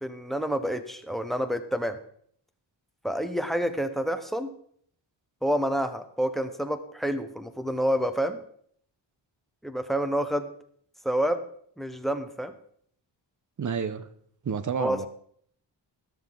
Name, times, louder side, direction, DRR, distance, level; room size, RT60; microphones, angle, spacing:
voice 1, 0.0-2.0 3.0-4.5 5.4-8.4 9.6-10.5 11.0-11.4 11.8-12.5 14.8-15.1, equal, ahead, 10 dB, 0.8 m, -28 dB
voice 2, 13.6-14.1 14.4-15.1, right 6 dB, 40° right, 13 dB, 0.9 m, -30 dB
13.0 x 12.5 x 3.9 m, 0.63 s
wide cardioid pair, 160°, 45 cm